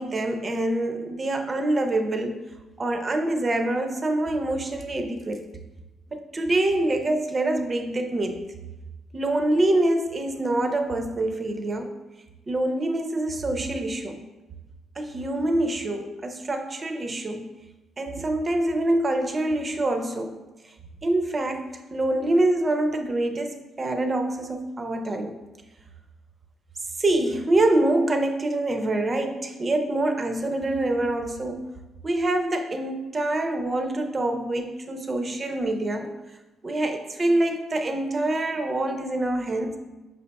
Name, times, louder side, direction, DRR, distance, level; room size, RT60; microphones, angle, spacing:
voice 1, 0.0-2.4 2.8-5.5 6.1-8.5 9.1-11.9 12.5-14.2 15.0-17.5 18.0-20.4 21.0-25.4 27.0-31.7 32.0-36.1 36.6-39.8, right 1 dB, 35° right, 6 dB, 0.5 m, -25 dB
5.6 x 4.0 x 2.2 m, 1.1 s
cardioid pair, 90°, 0 cm